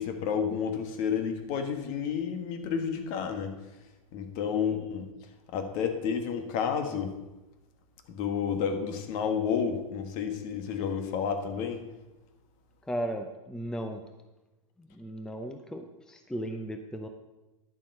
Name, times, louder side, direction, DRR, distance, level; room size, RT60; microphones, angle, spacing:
voice 1, 0.0-3.5 4.1-5.1 5.5-7.1 8.1-11.8, left 7 dB, 45° left, 7 dB, 1.5 m, -30 dB
voice 2, 12.9-14.0 14.8-17.1, right 1 dB, 5° left, 6 dB, 0.7 m, -36 dB
10.5 x 7.4 x 5.4 m, 1.0 s
hypercardioid pair, 105°, 18 cm